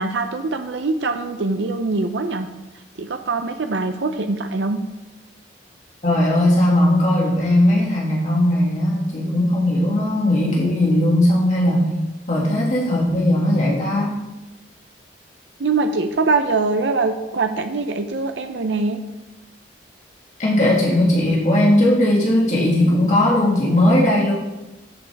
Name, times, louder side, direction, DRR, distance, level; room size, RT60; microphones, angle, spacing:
voice 1, 0.0-2.5 3.0-4.8 15.6-19.0, right 3 dB, 75° right, 7 dB, 0.6 m, -23 dB
voice 2, 6.0-11.9 12.3-14.2 20.4-24.3, left 1 dB, 40° left, -5 dB, 2.1 m, -18 dB
11.0 x 7.7 x 3.5 m, 1.0 s
head